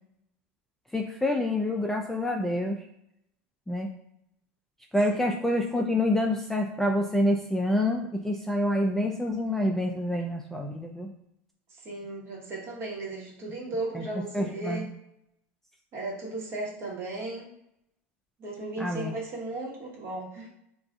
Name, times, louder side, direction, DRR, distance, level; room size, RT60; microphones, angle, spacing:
voice 1, 0.9-2.8 3.7-3.9 4.9-11.1 13.9-14.0 14.3-14.9 18.8-19.1, left 1 dB, 5° left, 1 dB, 0.3 m, -27 dB
voice 2, 11.7-14.9 15.9-17.5 18.4-20.5, right 2 dB, 45° right, -2 dB, 1.1 m, -36 dB
2.4 x 2.3 x 3.6 m, 0.79 s
hypercardioid pair, 95°, 6 cm